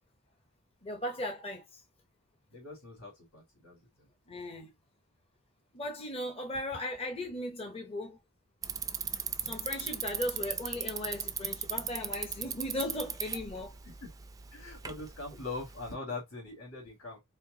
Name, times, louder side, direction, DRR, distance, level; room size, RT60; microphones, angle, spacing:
voice 1, 0.8-1.8 4.3-4.7 5.7-8.2 9.4-13.7, left 1 dB, 25° left, 0.8 m, -37 dB
voice 2, 2.5-4.1 13.8-14.1 14.5-17.2, left 3 dB, 85° left, 2.3 m, -42 dB
Bicycle, 8.6-15.9, right 7 dB, 15° right, 0.4 m, -38 dB
4.5 x 2.4 x 3.8 m
head